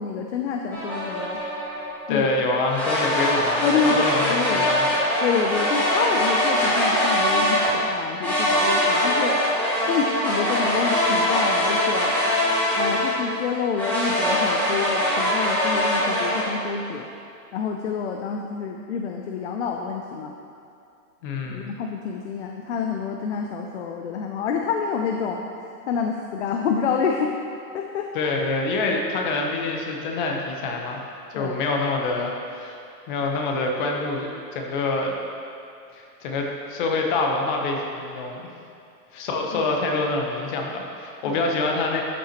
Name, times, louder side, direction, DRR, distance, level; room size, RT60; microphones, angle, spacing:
voice 1, 0.0-1.4 2.1-2.3 3.6-4.7 5.2-12.1 12.8-17.1 17.5-20.3 21.5-25.4 25.9-27.3 27.7-28.3 31.3-31.5 39.5-39.7 41.2-41.4, left 6 dB, 45° left, 2 dB, 0.5 m, -28 dB
sound 1, 0.7-1.9 2.7-7.7 8.2-13.3 13.7-16.4, equal, 5° left, 1.3 m, -22 dB
voice 2, 2.1-4.9 21.2-21.7 28.1-31.0 31.3-32.8 33.1-35.1 35.9-38.5 39.1-42.0, left 3 dB, 30° left, 1 dB, 0.9 m, -26 dB
12.5 x 5.8 x 3.0 m, 2.5 s
hypercardioid pair, 155°, 48 cm